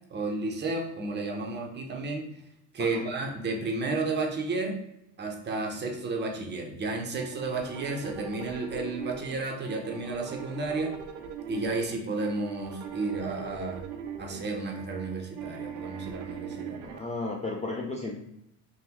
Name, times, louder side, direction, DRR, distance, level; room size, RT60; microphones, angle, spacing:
voice 1, 0.1-2.3 2.7-4.8 5.2-10.9 11.5-13.8 14.2-16.8, right 3 dB, 30° right, 2 dB, 0.6 m, -32 dB
sound 1, 7.1-17.0, right 7 dB, 85° right, 0.6 m, -41 dB
voice 2, 16.8-18.1, left 2 dB, 20° left, -2 dB, 0.3 m, -34 dB
3.4 x 2.2 x 2.9 m, 0.79 s
cardioid pair, 115°, 38 cm